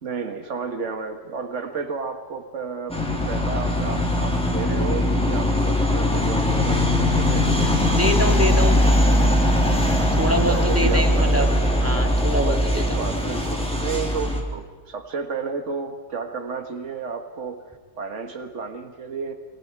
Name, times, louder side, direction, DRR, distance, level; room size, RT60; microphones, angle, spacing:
voice 1, 0.0-3.0 3.3-8.0 10.3-11.5 12.5-12.6 13.0-17.6 18.0-19.3, right 5 dB, 75° right, 6 dB, 1.9 m, -32 dB
sound 1, 2.9-14.4, left 1 dB, 5° left, 3.3 m, -20 dB
voice 2, 7.8-8.9 10.2-11.5 11.8-12.8, equal, 10° right, 3 dB, 2.4 m, -25 dB
29.5 x 22.5 x 4.7 m, 1.4 s
omnidirectional pair, 1.3 m